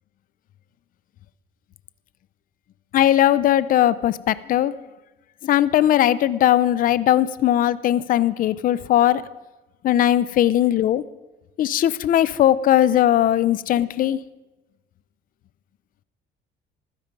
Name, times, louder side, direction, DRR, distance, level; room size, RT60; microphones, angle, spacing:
voice 1, 2.9-4.7 5.4-9.2 9.8-11.0 11.6-14.2, left 12 dB, 55° left, 17 dB, 0.6 m, -19 dB
15.5 x 12.5 x 5.3 m, 1.1 s
cardioid pair, 110°, 17 cm